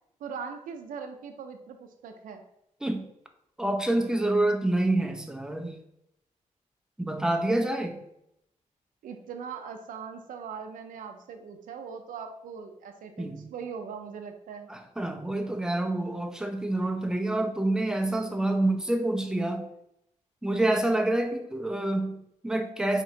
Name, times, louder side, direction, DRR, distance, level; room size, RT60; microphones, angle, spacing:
voice 1, 0.2-2.4 9.0-14.7 18.4-18.6, right 6 dB, 90° right, 7 dB, 0.4 m, -40 dB
voice 2, 3.6-5.8 7.0-8.0 13.2-13.5 14.7-19.7 20.4-23.0, right 1 dB, 5° right, 5 dB, 0.5 m, -27 dB
4.2 x 2.8 x 2.7 m, 0.78 s
cardioid pair, 60°, 14 cm